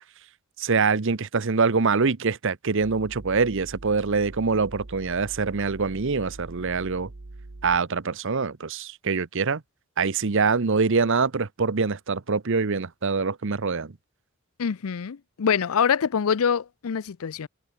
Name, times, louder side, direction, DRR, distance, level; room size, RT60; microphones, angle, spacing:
voice 1, 0.6-7.1 7.6-9.6 10.0-13.9, right 4 dB, 60° right, 0.9 m, -24 dB
sound 1, 2.8-7.8, right 2 dB, 90° right, 1.2 m, -43 dB
voice 2, 14.6-17.5, left 7 dB, 80° left, 0.5 m, -25 dB
head